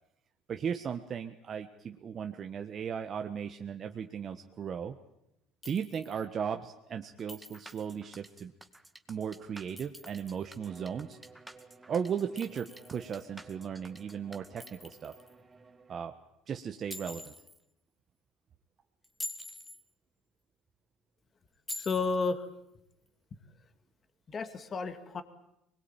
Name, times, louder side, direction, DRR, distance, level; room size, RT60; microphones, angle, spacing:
voice 1, 0.5-5.0 5.6-8.5 9.1-11.2 11.9-15.2 15.9-16.1 16.5-17.3, right 7 dB, 45° right, 5 dB, 1.4 m, -36 dB
Chink clink, 5.6-6.3 7.3-7.9 9.5-10.4 12.4-13.2 14.6-15.3 16.9-17.6 19.0-19.8 21.7-22.3, left 2 dB, 15° left, 2.5 m, -45 dB
sound 1, 7.2-14.7, right 1 dB, 5° right, 2.2 m, -53 dB
Bowed string instrument, 10.6-16.2, right 4 dB, 25° right, 4.4 m, -56 dB
voice 2, 21.7-22.5 24.3-25.2, left 4 dB, 35° left, 9 dB, 2.4 m, -32 dB
24.0 x 21.0 x 9.1 m, 0.82 s
supercardioid pair, 85°, 0 cm